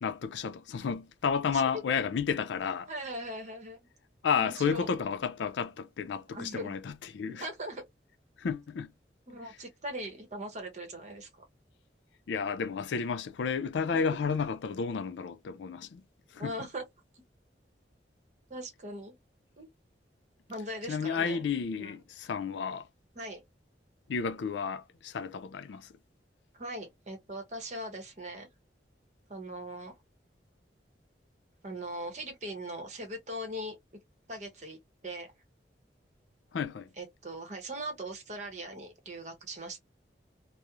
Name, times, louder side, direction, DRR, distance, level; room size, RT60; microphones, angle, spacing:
voice 1, 0.0-2.9 4.2-7.5 8.4-8.9 12.3-16.0 16.3-16.5 20.9-22.9 24.1-25.9 36.5-36.9, left 6 dB, 85° left, 0.4 m, -32 dB
voice 2, 2.9-3.8 4.4-4.9 6.3-6.8 7.4-7.8 9.3-11.4 13.9-14.0 16.4-16.8 18.5-19.1 19.6-19.7 20.5-21.5 21.8-22.0 23.1-23.4 26.5-28.5 29.3-29.9 31.6-33.7 34.3-35.3 37.0-39.8, right 1 dB, 40° right, 0.8 m, -40 dB
2.9 x 2.0 x 2.3 m
head